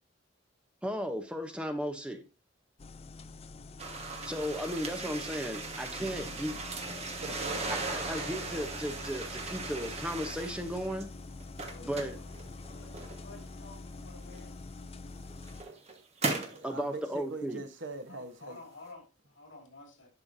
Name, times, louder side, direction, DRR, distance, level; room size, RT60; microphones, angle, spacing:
voice 1, 0.8-2.2 4.2-6.6 7.9-11.1 11.8-12.2 16.6-17.6, equal, 5° right, 0.7 m, -35 dB
sound 1, 2.8-15.6, left 3 dB, 35° left, 0.4 m, -46 dB
sound 2, 3.8-11.0 11.4-13.4 14.3-14.4 15.2-16.6, right 3 dB, 35° right, 1.4 m, -38 dB
voice 2, 7.2-7.8 16.5-18.6, right 3 dB, 70° right, 1.1 m, -42 dB
voice 3, 11.6-14.5 18.1-20.1, left 3 dB, 75° left, 2.9 m, -52 dB
11.0 x 5.7 x 2.6 m
head